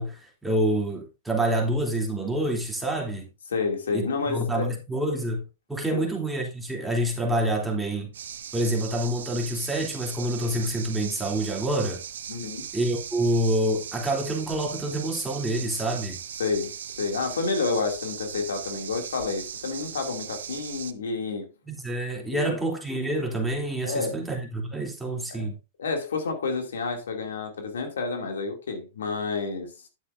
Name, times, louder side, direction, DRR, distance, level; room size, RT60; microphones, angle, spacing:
voice 1, 0.0-3.3 3.9-5.4 5.7-8.1 8.5-12.0 12.7-16.2 21.7-25.5, right 1 dB, 5° right, 3.0 m, -27 dB
voice 2, 3.5-4.7 5.9-6.1 12.3-12.7 16.4-21.5 22.3-22.5 23.8-24.2 25.3-25.5 25.8-29.7, left 4 dB, 85° left, 2.6 m, -29 dB
sound 1, 8.1-20.9, right 8 dB, 80° right, 0.9 m, -39 dB
11.0 x 8.1 x 2.6 m
hypercardioid pair, 120°, 0 cm